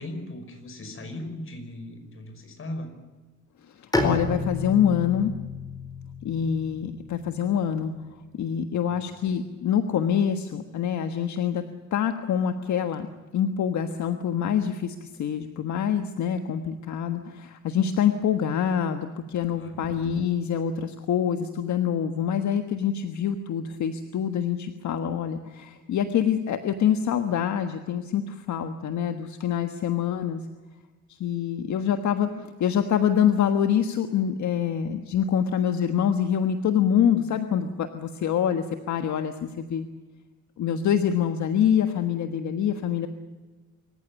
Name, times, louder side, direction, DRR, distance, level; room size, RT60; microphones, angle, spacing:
voice 1, 0.0-2.9 8.9-9.0 19.5-19.9, left 1 dB, 45° left, 7 dB, 5.5 m, -38 dB
Bowed string instrument, 3.9-7.5, left 2 dB, 10° left, 4.4 m, -31 dB
voice 2, 4.0-5.3 6.2-7.9 8.4-11.6 11.9-13.1 13.3-30.4 31.2-39.9 40.6-43.1, left 8 dB, 70° left, 8 dB, 1.5 m, -25 dB
26.0 x 14.5 x 9.9 m, 1.3 s
cardioid pair, 115°, 30 cm